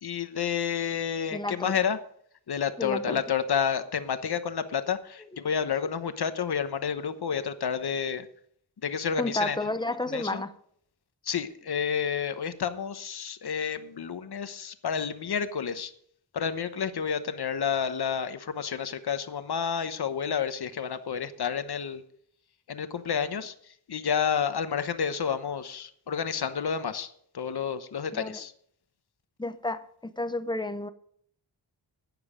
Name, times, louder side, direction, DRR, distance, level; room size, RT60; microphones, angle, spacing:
voice 1, 0.0-2.0 2.5-8.3 8.8-9.6 10.1-10.4 11.2-15.9 16.3-22.0 22.7-27.1 27.3-28.5, left 7 dB, 60° left, 1.1 m, -30 dB
voice 2, 1.3-1.8 2.8-3.2 9.2-10.5 28.1-28.4 29.4-30.9, left 2 dB, 10° left, 0.7 m, -31 dB
12.0 x 9.5 x 5.1 m
wide cardioid pair, 110°, 43 cm